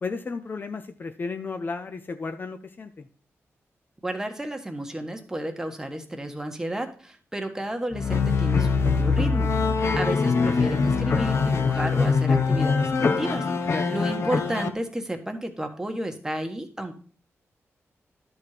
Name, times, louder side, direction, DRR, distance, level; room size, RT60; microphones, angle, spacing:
voice 1, 0.0-3.1 9.8-10.0 13.7-13.9, left 4 dB, 40° left, 9 dB, 0.6 m, -33 dB
voice 2, 4.0-9.5 9.9-16.9, right 1 dB, 10° right, 4 dB, 1.3 m, -32 dB
sound 1, 7.9-14.7, left 4 dB, 60° left, 0.9 m, -23 dB
11.5 x 4.4 x 4.9 m, 0.43 s
cardioid pair, 90°, 5 cm